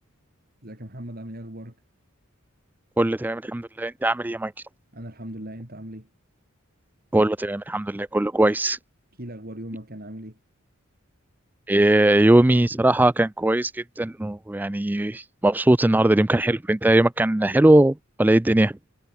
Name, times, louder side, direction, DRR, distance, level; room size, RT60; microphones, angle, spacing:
voice 1, 0.6-1.8 4.9-6.1 9.2-10.4, right 1 dB, 45° right, 5.5 m, -38 dB
voice 2, 3.0-4.5 7.1-8.8 11.7-18.8, right 1 dB, 10° right, 0.3 m, -20 dB
head